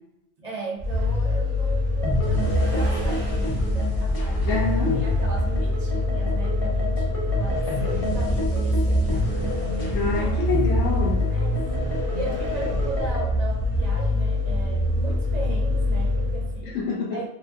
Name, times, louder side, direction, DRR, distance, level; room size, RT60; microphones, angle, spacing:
voice 1, 0.4-4.6 4.9-9.3 10.0-10.5 11.3-11.6 12.1-16.8 17.1-17.3, right 3 dB, 45° right, -3 dB, 0.6 m, -37 dB
Vehicle, 0.8-16.7, left 1 dB, 15° right, 0.9 m, -25 dB
sound 1, 2.0-13.3, left 1 dB, 40° left, 0.5 m, -30 dB
voice 2, 4.5-5.0 9.9-11.3 16.7-17.2, left 4 dB, 70° left, -3 dB, 1.1 m, -26 dB
2.7 x 2.4 x 2.5 m, 0.85 s
omnidirectional pair, 1.3 m